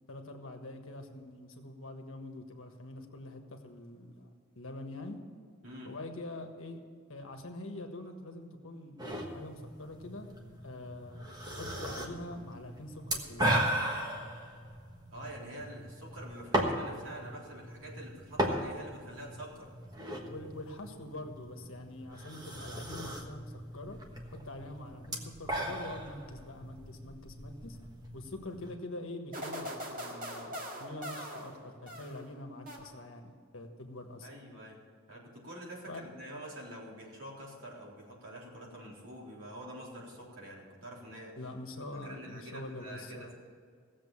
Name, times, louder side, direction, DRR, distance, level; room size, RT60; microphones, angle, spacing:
voice 1, 0.1-4.3 4.5-5.2 5.8-6.8 7.1-10.3 10.6-13.5 20.2-24.0 24.3-27.8 28.1-34.3 35.9-36.0 41.3-43.3, left 2 dB, 65° left, 4 dB, 1.5 m, -45 dB
sound 1, 9.0-28.7, right 1 dB, 20° right, 1.3 m, -37 dB
voice 2, 15.1-19.7 34.2-34.8 35.1-41.3 42.0-43.3, right 1 dB, 60° right, -4 dB, 3.8 m, -46 dB
sound 2, 29.3-32.3 32.7-33.3, equal, 40° right, 1.9 m, -42 dB
17.0 x 7.5 x 7.3 m, 2.1 s
head